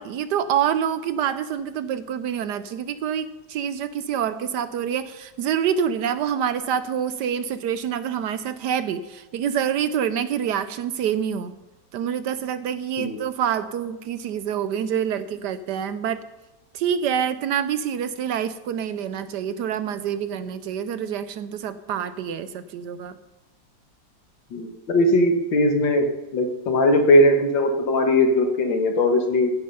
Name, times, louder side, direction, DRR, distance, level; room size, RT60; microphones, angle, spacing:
voice 1, 0.0-11.5 11.9-16.2 16.7-23.2, right 8 dB, 70° right, 13 dB, 1.1 m, -26 dB
voice 2, 24.5-26.1 26.3-29.5, left 1 dB, 75° left, 4 dB, 2.2 m, -19 dB
15.0 x 8.6 x 5.5 m, 1.0 s
omnidirectional pair, 2.1 m